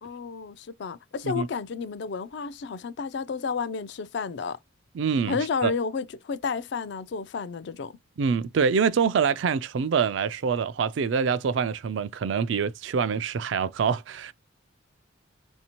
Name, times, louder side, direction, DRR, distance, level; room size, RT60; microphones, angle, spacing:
voice 1, 0.0-4.6 5.3-7.9, left 5 dB, 60° left, 0.3 m, -31 dB
voice 2, 4.9-5.7 8.2-14.3, right 6 dB, 70° right, 0.3 m, -25 dB
4.2 x 2.7 x 2.9 m
head